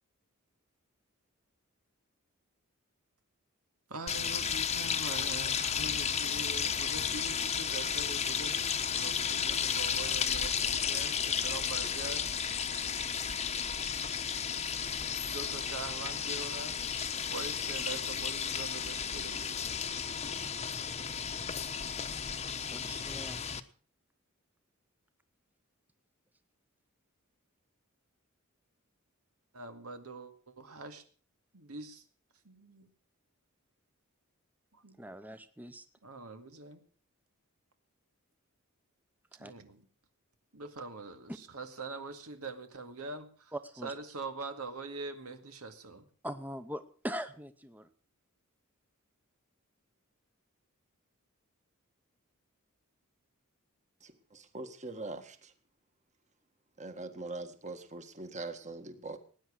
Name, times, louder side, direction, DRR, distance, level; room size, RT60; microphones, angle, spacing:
voice 1, 3.9-12.3 15.2-17.0 17.3-19.7 29.5-31.0 31.5-32.0 32.4-32.9 34.7-35.1 36.0-36.8 39.4-39.8 40.5-43.5 43.8-46.1, right 3 dB, 90° right, 2.1 m, -44 dB
sound 1, 4.1-23.6, left 7 dB, 30° left, 1.0 m, -33 dB
voice 2, 22.7-23.4 35.0-35.8 39.3-39.5 43.5-43.9 46.2-47.9, equal, 10° right, 0.8 m, -41 dB
voice 3, 54.0-55.5 56.8-59.2, right 2 dB, 35° right, 1.7 m, -42 dB
19.0 x 9.5 x 6.3 m
head